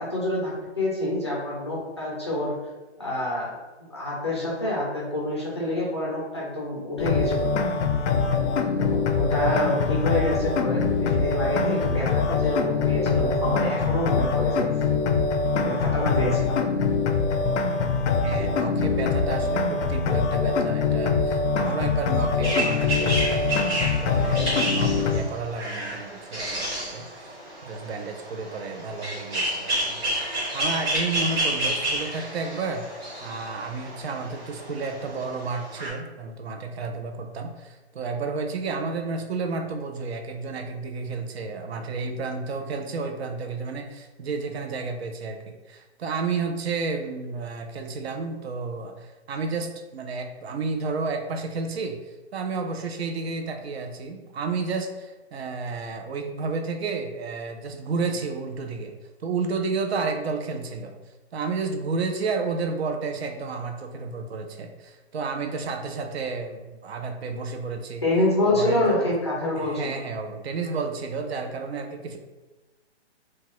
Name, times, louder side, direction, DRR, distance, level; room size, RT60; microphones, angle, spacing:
voice 1, 0.0-2.5 3.0-3.5 3.9-7.7 8.8-14.7 15.5-16.6 68.0-70.0, left 1 dB, 25° left, -5 dB, 0.4 m, -27 dB
sound 1, 7.0-25.2, left 4 dB, 85° left, 0.5 m, -24 dB
voice 2, 18.2-23.6 24.0-27.4 27.7-30.0 30.5-32.8 33.2-59.0 59.2-60.9 61.3-68.0 68.5-69.1 69.6-72.2, right 4 dB, 65° right, 5 dB, 0.5 m, -31 dB
sound 2, 22.4-35.9, right 1 dB, 15° right, 1.1 m, -30 dB
2.9 x 2.2 x 2.9 m, 1.2 s
hypercardioid pair, 170°, 34 cm